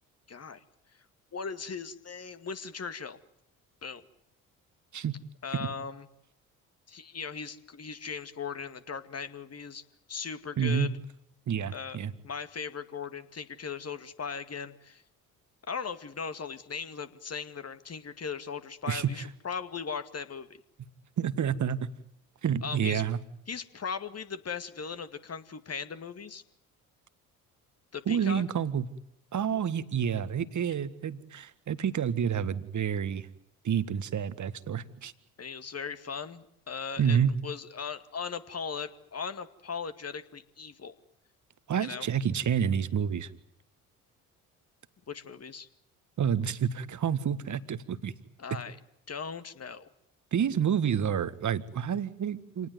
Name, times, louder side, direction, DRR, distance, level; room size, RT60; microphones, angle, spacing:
voice 1, 0.3-0.6 1.3-3.2 3.8-4.0 5.4-6.1 6.9-9.8 10.1-10.9 11.7-12.0 12.2-15.0 15.7-20.6 22.6-23.0 23.5-26.4 27.9-28.4 35.4-40.9 41.8-42.1 45.1-45.7 48.4-48.8 49.1-49.9, left 6 dB, 35° left, 10 dB, 2.2 m, -38 dB
voice 2, 10.6-10.9 11.5-12.1 18.9-19.1 21.2-21.9 22.4-23.2 28.1-28.9 29.3-33.3 33.6-35.1 37.0-37.3 41.7-43.3 46.2-48.1 50.3-52.7, right 8 dB, 40° right, 15 dB, 1.8 m, -29 dB
28.0 x 19.5 x 9.5 m, 0.77 s
hypercardioid pair, 50°, 43 cm